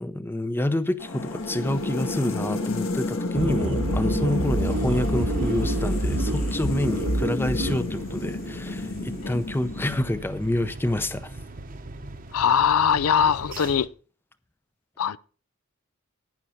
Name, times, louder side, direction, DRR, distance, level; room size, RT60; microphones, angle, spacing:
voice 1, 0.0-11.4, left 1 dB, 10° left, 0.6 m, -28 dB
sound 1, 1.0-10.3, left 2 dB, 60° left, 1.6 m, -31 dB
sound 2, 3.3-7.8, right 1 dB, 60° right, 1.1 m, -27 dB
sound 3, 4.7-13.9, right 2 dB, 40° right, 0.9 m, -41 dB
voice 2, 12.3-13.9 15.0-15.2, left 7 dB, 80° left, 0.5 m, -21 dB
12.0 x 9.8 x 4.3 m
head